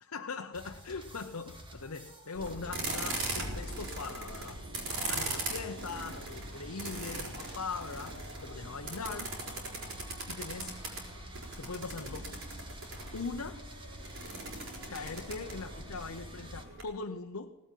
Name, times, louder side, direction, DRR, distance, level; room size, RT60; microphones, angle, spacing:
voice 1, 0.0-4.6 5.1-9.4 10.3-10.8 11.6-12.7 13.1-13.6 14.9-17.5, left 4 dB, 80° left, 4 dB, 0.9 m, -41 dB
sound 1, 0.5-16.6, right 1 dB, 25° right, 2.0 m, -50 dB
sound 2, 2.3-16.8, right 2 dB, 60° right, 5.0 m, -40 dB
sound 3, 3.6-15.8, equal, 85° right, 6.1 m, -55 dB
18.5 x 8.4 x 9.2 m, 1.1 s
head